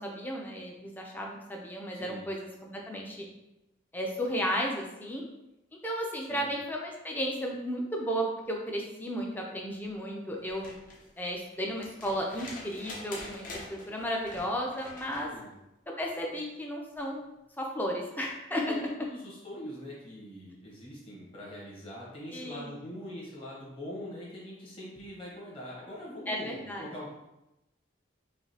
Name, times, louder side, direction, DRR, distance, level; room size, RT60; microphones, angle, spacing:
voice 1, 0.0-3.2 3.9-5.3 5.8-10.8 11.2-15.3 16.0-17.2 17.6-18.7 22.3-22.7 26.3-26.9, equal, 10° left, 0 dB, 0.5 m, -34 dB
voice 2, 1.9-2.3 6.2-6.5 15.3-15.5 18.7-27.1, left 1 dB, 30° left, -5 dB, 1.2 m, -43 dB
sound 1, 10.4-15.3 16.9-17.0, left 2 dB, 45° left, 0.8 m, -46 dB
4.9 x 2.7 x 2.8 m, 0.91 s
head